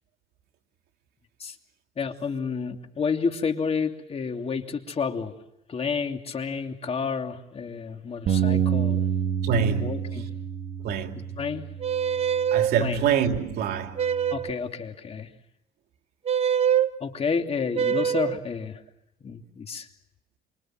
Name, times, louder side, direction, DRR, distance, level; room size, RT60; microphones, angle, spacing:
voice 1, 2.0-5.3 5.7-9.0 9.8-10.3 11.4-11.6 12.8-13.0 14.3-15.3 17.0-18.8 19.2-19.9, left 5 dB, 35° left, 2.9 m, -30 dB
Bass guitar, 8.3-12.7 13.3-14.5, right 8 dB, 55° right, 1.8 m, -29 dB
voice 2, 9.4-10.0 10.8-11.4 12.5-14.0, right 7 dB, 70° right, 2.8 m, -25 dB
sound 1, 11.8-12.7 14.0-14.6 16.3-16.9 17.7-18.4, right 8 dB, 35° right, 1.1 m, -24 dB
28.5 x 26.0 x 7.7 m
cardioid pair, 110°, 17 cm